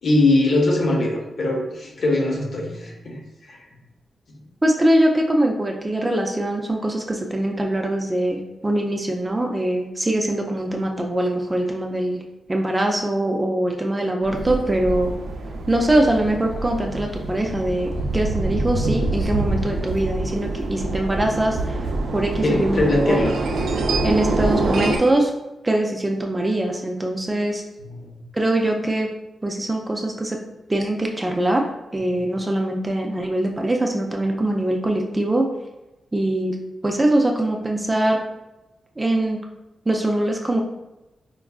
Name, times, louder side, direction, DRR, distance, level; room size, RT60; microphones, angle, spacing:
voice 1, 0.0-3.2 3.5-3.6 4.3-4.4 22.4-23.3 27.8-28.1, left 2 dB, 60° left, -1 dB, 0.8 m, -21 dB
voice 2, 4.6-12.2 12.5-15.1 15.7-21.8 22.1-23.2 24.0-25.3 25.6-27.6 28.3-29.1 29.4-30.4 30.7-31.6 31.9-35.4 36.1-36.6 36.8-38.2 39.0-39.4 39.9-40.6, right 1 dB, 15° right, 1 dB, 0.3 m, -22 dB
sound 1, 14.2-25.0, right 2 dB, 90° right, 0.4 m, -25 dB
4.5 x 2.3 x 2.3 m, 0.98 s
wide cardioid pair, 130°, 0 cm